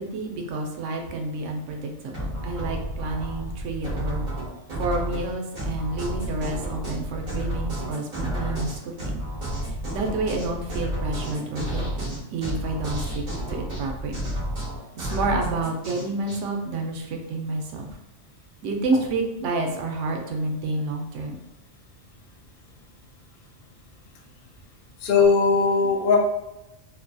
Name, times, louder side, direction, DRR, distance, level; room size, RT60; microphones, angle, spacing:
voice 1, 0.0-4.3 4.8-9.2 9.5-14.3 14.9-18.0 18.6-21.4, right 2 dB, 85° right, 2 dB, 0.9 m, -29 dB
sound 1, 2.1-16.4, equal, 45° right, 1.0 m, -31 dB
voice 2, 25.0-26.2, left 5 dB, 60° left, 1 dB, 0.6 m, -19 dB
2.6 x 2.5 x 2.2 m, 0.91 s
omnidirectional pair, 1.2 m